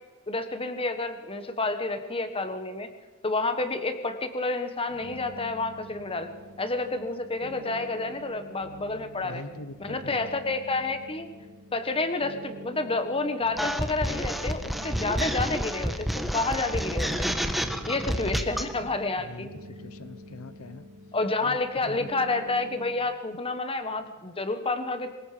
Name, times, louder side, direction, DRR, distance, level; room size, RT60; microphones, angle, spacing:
voice 1, 0.3-2.9 3.2-6.3 6.6-9.4 9.8-11.3 11.7-17.3 17.8-19.5 21.1-25.1, left 3 dB, 25° left, 8 dB, 1.4 m, -29 dB
sound 1, 4.9-23.0, right 1 dB, 85° right, 3.7 m, -46 dB
voice 2, 9.2-10.3 18.1-18.5 19.2-19.5 19.8-20.9 21.4-21.6 21.9-22.1, left 3 dB, 80° left, 13 dB, 0.9 m, -42 dB
sound 2, 13.6-18.7, equal, ahead, 1.4 m, -29 dB
24.5 x 20.5 x 5.1 m, 1.4 s
head